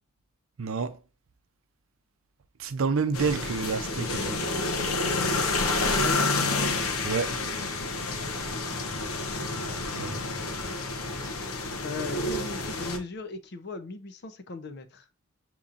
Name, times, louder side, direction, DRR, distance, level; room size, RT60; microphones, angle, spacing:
voice 1, 0.6-1.0 2.6-4.4 7.0-7.4 9.9-10.2, right 5 dB, 70° right, 0.5 m, -29 dB
sound 1, 3.1-13.0, left 3 dB, 85° left, 0.8 m, -29 dB
voice 2, 6.0-6.3 8.2-8.6 11.8-15.1, left 3 dB, 50° left, 0.6 m, -38 dB
6.9 x 3.0 x 2.5 m
head